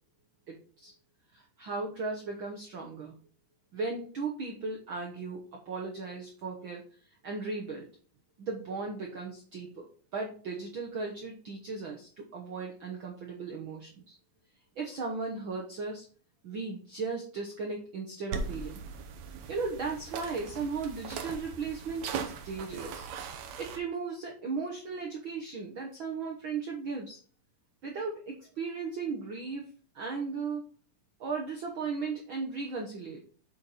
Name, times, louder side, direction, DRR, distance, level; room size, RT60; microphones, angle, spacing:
voice 1, 0.5-0.9 1.3-3.2 3.7-6.8 7.2-7.9 8.4-14.1 14.8-16.0 16.4-18.8 19.5-23.1 23.6-27.2 27.8-30.7 31.2-33.2, right 4 dB, 85° right, 0 dB, 1.1 m, -36 dB
sound 1, 18.3-23.8, right 5 dB, 70° right, 2.0 m, -39 dB
8.2 x 4.5 x 4.1 m, 0.42 s
omnidirectional pair, 3.9 m